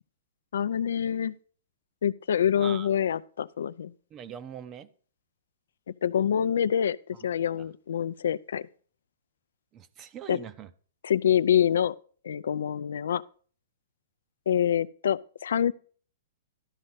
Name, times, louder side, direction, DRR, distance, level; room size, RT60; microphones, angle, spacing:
voice 1, 0.5-1.3 2.0-3.9 6.0-7.0 7.2-8.7 10.3-10.4 11.0-11.9 12.2-13.2 14.5-15.7, left 9 dB, 85° left, 0.4 m, -26 dB
voice 2, 2.6-2.9 4.1-4.9 9.7-10.7, right 8 dB, 25° right, 0.5 m, -42 dB
12.0 x 5.2 x 5.6 m
hypercardioid pair, 155°, 0 cm